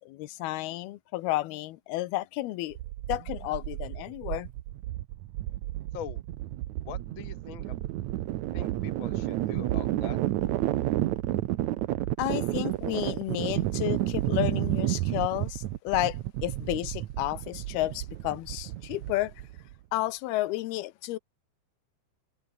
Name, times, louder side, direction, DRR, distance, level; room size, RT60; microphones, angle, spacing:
voice 1, 0.0-2.8 3.1-4.5 12.2-16.2 16.4-19.3 19.9-21.2, left 17 dB, 85° left, 2.9 m, -31 dB
sound 1, 2.7-19.7, right 15 dB, 75° right, 1.7 m, -31 dB
voice 2, 6.7-7.8 8.5-10.2, left 11 dB, 65° left, 1.2 m, -43 dB
omnidirectional pair, 4.4 m